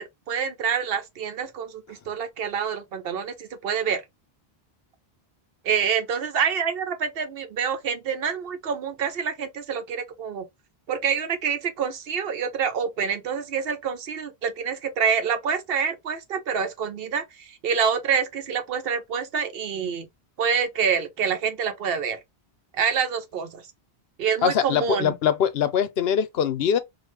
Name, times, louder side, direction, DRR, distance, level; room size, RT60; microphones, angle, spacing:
voice 1, 0.0-4.0 5.6-10.4 10.9-20.1 20.4-22.2 22.7-23.6 24.2-25.1, right 6 dB, 70° right, 0.9 m, -27 dB
voice 2, 24.4-26.8, left 8 dB, 75° left, 0.8 m, -23 dB
3.1 x 2.4 x 3.1 m
omnidirectional pair, 1.1 m